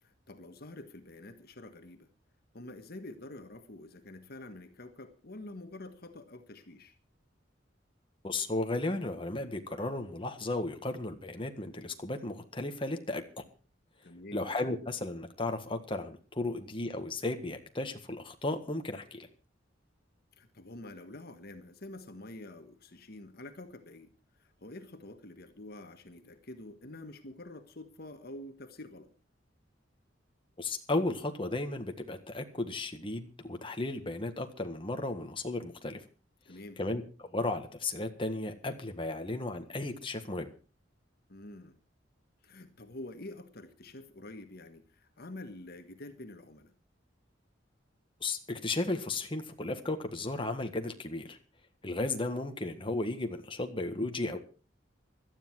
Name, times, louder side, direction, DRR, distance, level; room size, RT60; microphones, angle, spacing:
voice 1, 0.0-2.1 2.5-6.9 14.0-14.4 20.4-24.1 24.4-29.1 36.4-36.8 41.3-41.8 42.4-46.7, left 2 dB, 55° left, 8 dB, 1.5 m, -47 dB
voice 2, 8.2-13.2 14.3-19.3 30.6-36.0 36.8-40.5 48.2-51.4 51.8-54.4, left 2 dB, 25° left, 5 dB, 1.6 m, -34 dB
17.5 x 12.5 x 4.7 m, 0.35 s
head